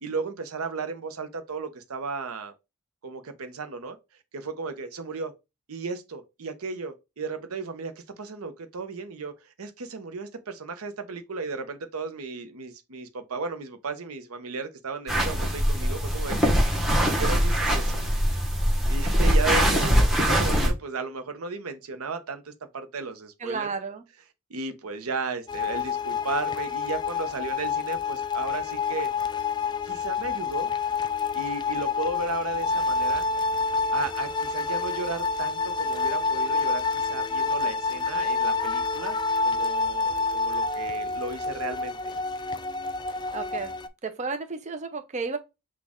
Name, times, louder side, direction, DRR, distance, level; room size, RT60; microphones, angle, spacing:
voice 1, 0.0-2.5 3.0-4.0 4.3-5.3 5.7-16.5 17.0-17.9 18.9-23.7 24.5-29.1 29.8-30.7 31.3-33.2 33.9-39.2 39.4-42.1, right 4 dB, 85° right, 0.8 m, -35 dB
sound 1, 15.1-20.7, equal, ahead, 1.1 m, -22 dB
voice 2, 23.4-24.0 43.3-43.7 44.0-45.4, right 4 dB, 35° right, 0.6 m, -32 dB
sound 2, 25.5-43.9, left 4 dB, 20° left, 0.3 m, -28 dB
6.1 x 2.4 x 3.6 m
head